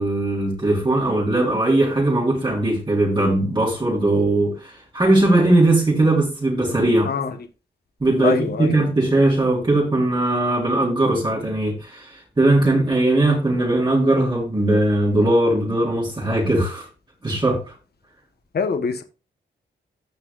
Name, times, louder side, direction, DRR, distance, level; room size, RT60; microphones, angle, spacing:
voice 1, 0.0-7.1 8.0-12.1 12.4-16.9 17.2-17.6, right 2 dB, 25° right, 4.5 m, -19 dB
voice 2, 7.0-7.4 8.2-8.8 18.5-19.0, left 5 dB, 55° left, 1.4 m, -24 dB
15.5 x 6.0 x 2.6 m
cardioid pair, 100°, 20 cm